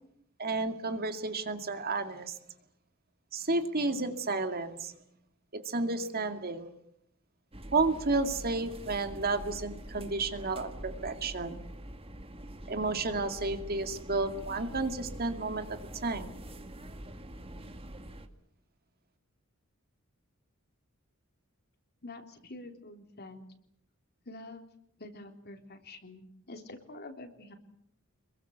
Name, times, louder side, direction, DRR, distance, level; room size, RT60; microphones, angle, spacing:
voice 1, 0.4-2.3 3.3-4.9 5.7-6.7 7.7-11.6 12.7-16.3, right 3 dB, 45° right, 7 dB, 2.3 m, -32 dB
sound 1, 7.5-18.3, right 1 dB, 25° right, 2.1 m, -45 dB
voice 2, 22.0-23.4 24.3-24.7 25.0-27.5, left 2 dB, 50° left, 5 dB, 3.6 m, -47 dB
26.5 x 22.5 x 8.1 m, 0.72 s
head